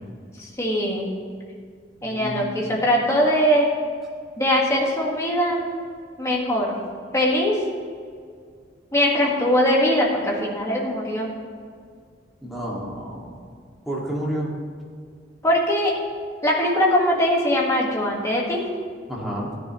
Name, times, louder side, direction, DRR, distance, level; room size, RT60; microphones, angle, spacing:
voice 1, 0.4-1.1 2.0-3.7 4.4-5.7 6.2-6.8 7.1-7.6 8.9-11.3 15.4-15.9 16.4-18.6, equal, 15° left, -2 dB, 1.7 m, -21 dB
voice 2, 2.0-2.9 12.4-13.4 13.9-14.5 19.1-19.5, right 1 dB, ahead, -5 dB, 2.1 m, -30 dB
14.5 x 9.8 x 3.1 m, 2.1 s
head